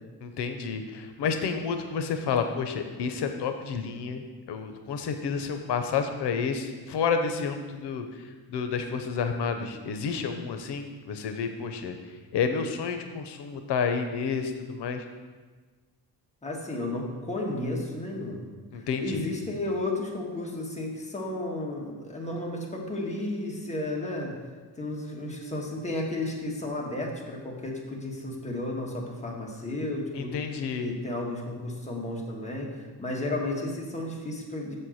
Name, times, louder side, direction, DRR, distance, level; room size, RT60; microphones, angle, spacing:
voice 1, 0.2-8.0 8.5-12.0 12.3-15.0 18.7-19.3 30.1-30.9, left 6 dB, 90° left, 6 dB, 0.7 m, -30 dB
voice 2, 16.4-18.4 18.7-24.4 24.8-30.4 30.8-34.8, left 2 dB, 15° left, -1 dB, 1.3 m, -33 dB
7.0 x 4.4 x 6.3 m, 1.4 s
wide cardioid pair, 125°, 39 cm